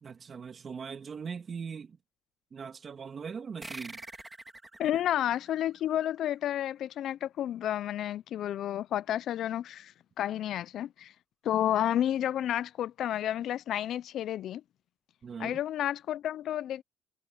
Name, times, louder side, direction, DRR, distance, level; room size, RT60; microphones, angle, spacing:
voice 1, 0.0-2.0 2.5-4.0 15.2-15.6, right 6 dB, 45° right, 2.4 m, -40 dB
sound 1, 3.6-6.7, right 2 dB, 15° right, 3.4 m, -47 dB
voice 2, 4.8-11.1 11.4-14.6 15.4-16.8, left 11 dB, 75° left, 0.4 m, -31 dB
cardioid pair, 90°, 0 cm